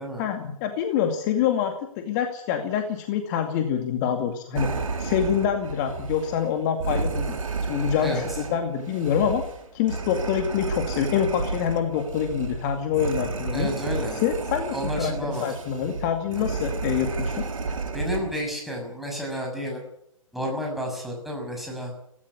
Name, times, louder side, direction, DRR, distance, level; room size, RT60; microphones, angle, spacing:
voice 1, 0.2-4.7 5.0-7.3 7.7-9.4 9.7-13.7 14.1-17.4, left 8 dB, 35° left, 5 dB, 2.4 m, -26 dB
sound 1, 4.6-18.4, right 4 dB, 70° right, 4.1 m, -31 dB
voice 2, 13.5-14.2 14.7-15.4 16.3-16.5 17.9-19.8 20.3-21.9, equal, ahead, 0 dB, 6.6 m, -31 dB
17.0 x 16.5 x 9.8 m, 0.74 s
figure-of-eight pair, 135°, 18 cm